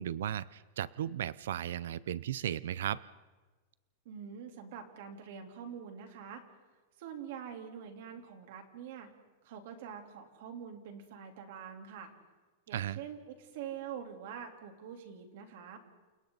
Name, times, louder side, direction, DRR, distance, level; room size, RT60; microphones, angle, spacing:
voice 1, 0.0-3.0 12.7-13.0, right 10 dB, 85° right, 18 dB, 0.6 m, -35 dB
voice 2, 4.1-6.4 7.0-9.1 9.4-12.1 12.7-15.8, right 8 dB, 55° right, 4 dB, 3.5 m, -45 dB
29.0 x 29.0 x 4.1 m, 1.3 s
supercardioid pair, 170°, 0 cm